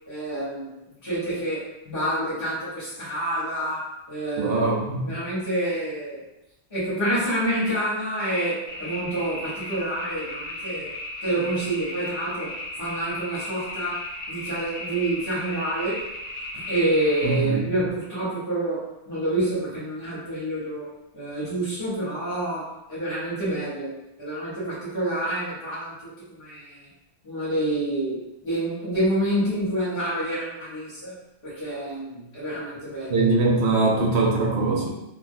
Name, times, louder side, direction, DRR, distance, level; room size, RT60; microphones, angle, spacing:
voice 1, 0.1-0.7 1.0-4.8 5.1-6.2 6.7-10.9 11.2-12.5 12.8-14.0 14.3-16.0 16.5-20.9 21.1-26.9 27.2-28.2 28.4-31.1 31.4-33.3, right 1 dB, 50° left, -10 dB, 1.2 m, -28 dB
voice 2, 4.4-5.0 17.2-17.7 33.1-34.9, right 3 dB, 65° right, -1 dB, 0.9 m, -22 dB
sound 1, 8.7-17.4, left 1 dB, 85° left, 1.0 m, -35 dB
3.2 x 2.2 x 2.6 m, 0.92 s
omnidirectional pair, 1.2 m